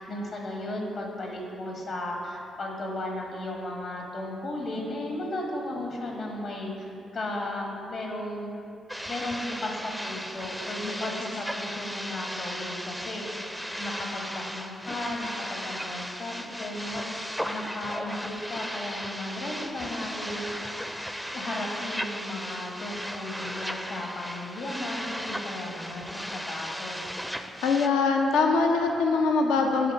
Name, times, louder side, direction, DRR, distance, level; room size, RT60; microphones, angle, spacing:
voice 1, 0.0-6.9 7.1-8.5 9.1-20.8 21.3-27.0, left 1 dB, 60° left, 0 dB, 1.2 m, -35 dB
sound 1, 8.9-27.9, equal, ahead, 0.4 m, -36 dB
voice 2, 10.8-11.2 27.6-29.9, left 4 dB, 75° left, 2 dB, 0.4 m, -23 dB
7.4 x 3.4 x 4.3 m, 2.6 s
hypercardioid pair, 40°, 0 cm